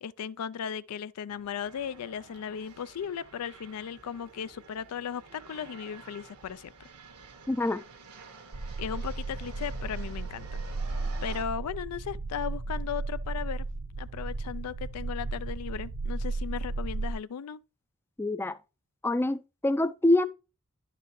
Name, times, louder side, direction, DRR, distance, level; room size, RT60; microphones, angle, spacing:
voice 1, 0.0-6.9 8.8-10.6 11.2-13.6 14.0-17.6, left 8 dB, 90° left, 0.4 m, -36 dB
sound 1, 1.3-11.4, right 4 dB, 85° right, 1.5 m, -50 dB
voice 2, 7.5-7.8 18.2-18.6 19.0-20.2, left 2 dB, 10° left, 0.3 m, -25 dB
sound 2, 8.5-17.1, right 3 dB, 65° right, 0.6 m, -34 dB
10.5 x 6.7 x 3.1 m
head